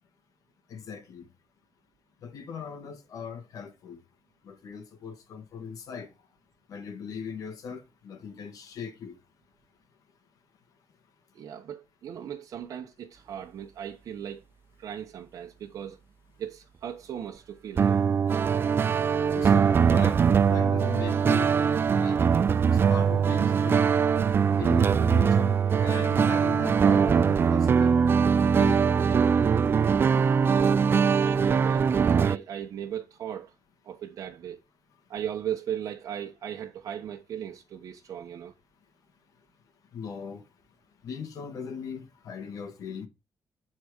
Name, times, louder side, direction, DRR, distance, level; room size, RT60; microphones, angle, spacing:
voice 1, 0.7-1.2 2.2-4.0 4.5-6.1 6.7-9.1 19.3-20.2 20.5-21.5 21.9-22.2 22.6-23.8 24.6-28.0 28.4-28.8 39.9-40.4 41.0-43.1, left 6 dB, 75° left, 1.8 m, -38 dB
voice 2, 11.3-14.4 14.8-16.0 16.4-18.1 31.2-33.5 33.8-34.6 35.1-38.5, right 9 dB, 70° right, 1.0 m, -37 dB
sound 1, 17.8-32.4, right 6 dB, 40° right, 0.3 m, -22 dB
7.7 x 4.3 x 5.0 m
cardioid pair, 115°, 6 cm